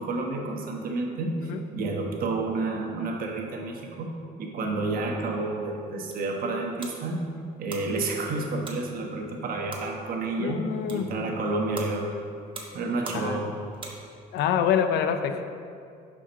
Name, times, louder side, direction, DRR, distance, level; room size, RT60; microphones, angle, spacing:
voice 1, 0.0-4.1 4.4-7.2 7.6-10.6 10.9-12.2 12.7-13.5, right 3 dB, 60° right, 1 dB, 1.2 m, -30 dB
sound 1, 5.8-14.4, right 2 dB, 30° right, 1.2 m, -45 dB
voice 2, 10.4-11.1 13.1-13.5 14.3-15.4, left 8 dB, 80° left, 8 dB, 0.6 m, -26 dB
7.0 x 5.1 x 5.2 m, 2.4 s
cardioid pair, 110°, 17 cm